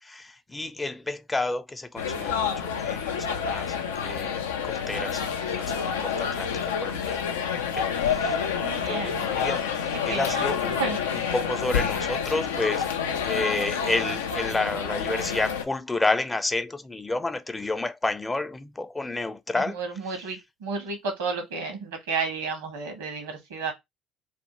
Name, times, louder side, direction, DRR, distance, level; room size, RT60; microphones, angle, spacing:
voice 1, 0.0-7.2 7.7-8.5 8.9-10.8 11.3-12.9 13.2-19.8, left 2 dB, 20° left, 0.4 m, -30 dB
sound 1, 2.0-15.6, left 7 dB, 85° left, 0.3 m, -28 dB
voice 2, 8.6-9.3 9.9-10.5 10.8-11.0 15.1-15.3 19.5-23.7, right 4 dB, 80° right, 0.9 m, -32 dB
2.5 x 2.1 x 2.9 m
hypercardioid pair, 60°, 0 cm